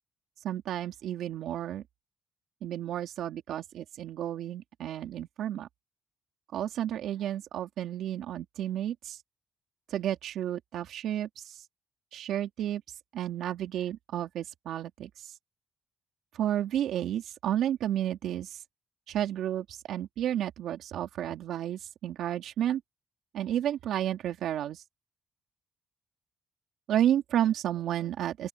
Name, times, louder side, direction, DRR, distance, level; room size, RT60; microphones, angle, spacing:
voice 1, 0.4-1.8 2.6-5.7 6.5-9.2 9.9-11.6 12.1-12.8 13.1-15.3 16.3-18.6 19.1-22.8 23.3-24.8 26.9-28.5, right 11 dB, 75° right, 3.2 m, -31 dB
open air
cardioid pair, 90°, 0 cm